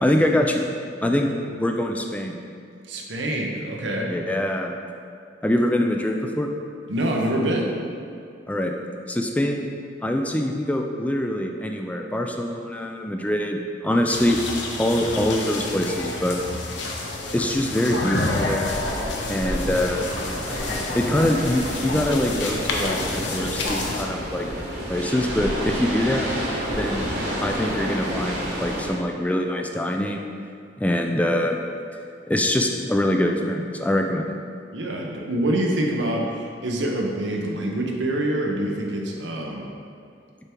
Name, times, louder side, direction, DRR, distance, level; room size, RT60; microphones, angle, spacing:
voice 1, 0.0-0.7 1.0-1.3 1.6-2.4 4.1-4.7 5.4-6.5 8.5-8.7 9.1-9.7 10.0-14.4 14.8-16.4 17.3-18.7 19.3-20.0 20.9-24.5 24.9-26.3 26.8-27.1 27.4-30.2 30.8-31.6 32.3-34.4, left 1 dB, 10° left, 3 dB, 0.3 m, -24 dB
voice 2, 2.9-4.1 6.9-7.8 34.7-39.7, right 1 dB, 85° right, 0 dB, 0.9 m, -26 dB
sound 1, 14.1-24.0, left 2 dB, 85° left, 0.8 m, -29 dB
sound 2, 18.7-28.9, equal, 70° right, 1.4 m, -30 dB
6.7 x 3.5 x 4.5 m, 2.4 s
head